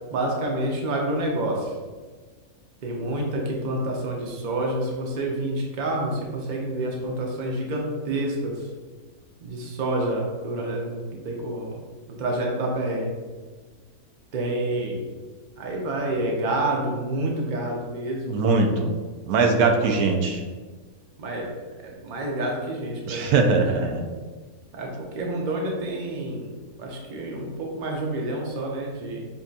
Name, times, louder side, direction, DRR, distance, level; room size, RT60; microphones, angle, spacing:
voice 1, 0.1-1.7 2.8-8.7 9.4-11.8 12.2-13.1 14.3-15.0 15.6-18.3 19.6-20.0 21.2-21.5 21.8-23.6 24.7-26.5 26.8-29.3, right 1 dB, 45° right, -1 dB, 0.6 m, -28 dB
voice 2, 18.3-18.9 19.3-20.4 23.1-24.0, right 4 dB, 90° right, 3 dB, 1.1 m, -21 dB
5.7 x 2.7 x 2.4 m, 1.4 s
omnidirectional pair, 1.6 m